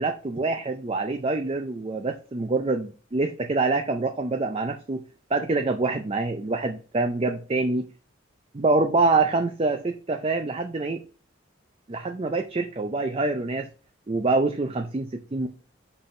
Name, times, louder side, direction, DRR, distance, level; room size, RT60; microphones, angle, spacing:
voice 1, 0.0-5.0 5.3-7.9 8.5-11.0 11.9-13.7 14.1-15.5, right 3 dB, 30° right, 5 dB, 0.5 m, -25 dB
5.4 x 4.4 x 4.8 m, 0.38 s
head